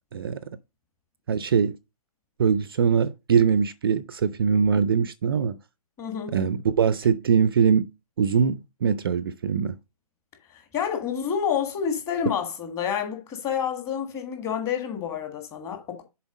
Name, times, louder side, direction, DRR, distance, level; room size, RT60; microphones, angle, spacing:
voice 1, 1.3-1.8 2.4-5.6 6.3-7.9 8.2-9.8, right 6 dB, 40° right, 0.4 m, -22 dB
voice 2, 6.0-6.4 10.5-16.0, left 8 dB, 15° left, 1.6 m, -29 dB
7.1 x 4.4 x 5.1 m
figure-of-eight pair, 145°, 20 cm